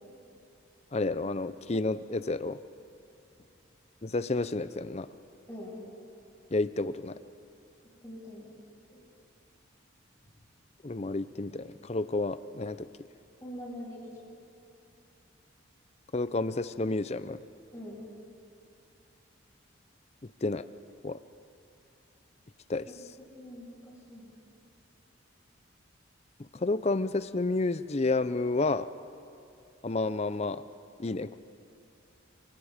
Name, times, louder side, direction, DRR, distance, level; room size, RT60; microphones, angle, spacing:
voice 1, 0.9-2.6 4.0-5.1 6.5-7.2 10.8-12.9 16.1-17.4 20.4-20.6 21.0-21.2 22.7-22.9 26.5-28.9 29.8-30.6 31.0-31.4, left 2 dB, 35° left, 14 dB, 0.6 m, -30 dB
voice 2, 5.5-5.8 8.0-8.5 8.9-9.0 13.4-14.2 17.7-18.1 23.2-24.3, left 1 dB, 15° left, -7 dB, 6.9 m, -43 dB
27.5 x 24.5 x 5.1 m, 2.7 s
head